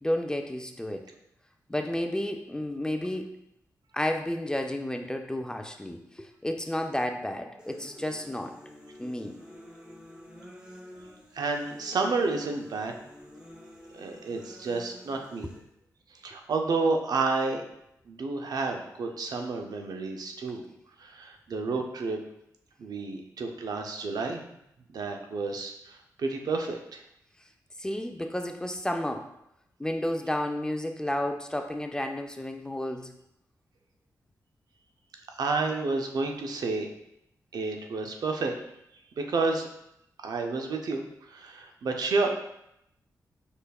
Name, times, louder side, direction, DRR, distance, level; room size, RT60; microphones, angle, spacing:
voice 1, 0.0-1.1 1.7-3.3 3.9-8.6 9.0-9.4 27.8-29.3 29.8-33.1, left 1 dB, 10° left, 5 dB, 0.5 m, -31 dB
sound 1, 7.6-15.6, left 1 dB, 15° right, 1.0 m, -49 dB
voice 2, 11.3-12.9 13.9-15.5 16.1-17.6 18.1-20.6 21.0-22.2 22.8-24.6 24.9-27.0 35.4-36.9 37.5-38.6 39.2-39.7 40.2-42.3, right 3 dB, 75° right, 3 dB, 0.6 m, -30 dB
5.1 x 4.4 x 2.3 m, 0.80 s
cardioid pair, 60°, 7 cm